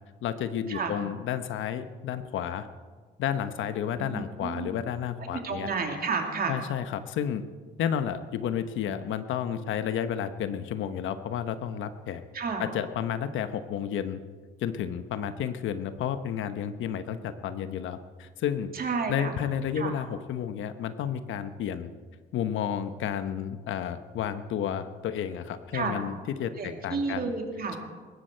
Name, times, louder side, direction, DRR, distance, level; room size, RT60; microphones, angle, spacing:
voice 1, 0.2-2.7 3.2-5.7 6.5-7.4 7.8-12.2 12.6-14.2 14.6-18.7 19.1-21.9 22.3-27.3 27.7-27.8, left 9 dB, 80° left, 10 dB, 1.0 m, -31 dB
voice 2, 3.9-4.8 5.4-6.6 12.3-12.7 18.7-19.4 19.8-19.9 25.7-26.0 26.6-27.8, right 4 dB, 50° right, 3 dB, 2.8 m, -31 dB
19.5 x 16.0 x 4.5 m, 1.5 s
cardioid pair, 90°, 20 cm